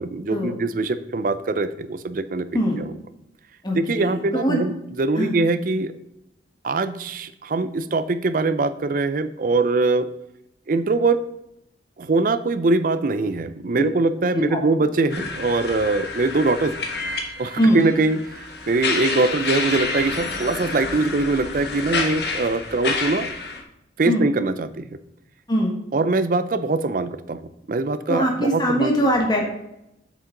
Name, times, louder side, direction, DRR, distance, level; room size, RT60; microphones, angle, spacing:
voice 1, 0.0-2.5 2.7-2.9 3.7-5.9 6.6-10.1 10.7-11.2 12.0-16.7 17.4-23.3 24.0-24.9 25.9-28.9, right 3 dB, 50° right, 12 dB, 0.5 m, -22 dB
voice 2, 3.6-4.6 5.2-5.3 14.3-14.6 17.6-17.8 24.1-24.2 25.5-25.7 28.1-29.5, equal, 25° left, 0 dB, 1.5 m, -21 dB
sound 1, 15.1-23.6, left 3 dB, 65° left, 1.4 m, -29 dB
8.4 x 7.1 x 3.8 m, 0.83 s
head